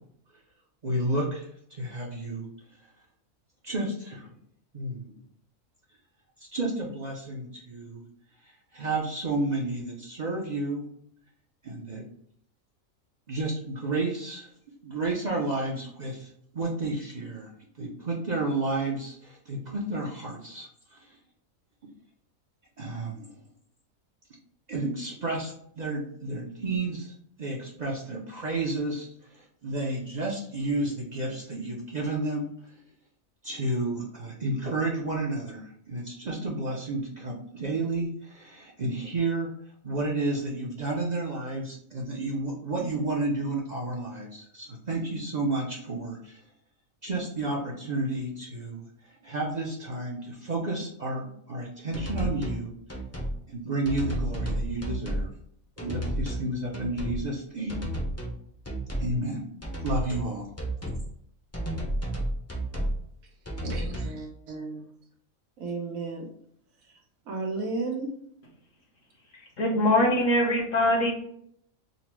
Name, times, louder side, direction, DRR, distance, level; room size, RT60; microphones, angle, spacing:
voice 1, 0.8-2.5 3.6-4.3 4.7-5.1 6.4-8.0 8.4-10.8 11.6-12.0 13.3-14.5 14.8-17.5 17.8-21.2 22.8-23.4 24.7-27.1 27.4-32.7 33.4-39.5 39.8-46.4 47.0-48.9 49.2-52.7 53.5-55.3 55.8-57.8 59.0-59.4 59.8-60.5, right 2 dB, 45° right, -3 dB, 0.6 m, -31 dB
sound 1, 51.9-52.6 52.9-53.3 53.8-55.3 55.8-56.5 56.7-57.2 57.7-58.4 58.6-59.1 59.6-60.3 60.6-61.0 61.5-63.0 63.5-64.2, right 1 dB, 15° left, 0.5 m, -31 dB
voice 2, 63.6-64.8 65.6-66.2 67.3-68.1, right 3 dB, 85° right, 0 dB, 1.4 m, -33 dB
voice 3, 69.6-71.1, left 1 dB, 70° left, 1 dB, 1.4 m, -22 dB
3.9 x 2.0 x 4.4 m, 0.69 s
omnidirectional pair, 1.4 m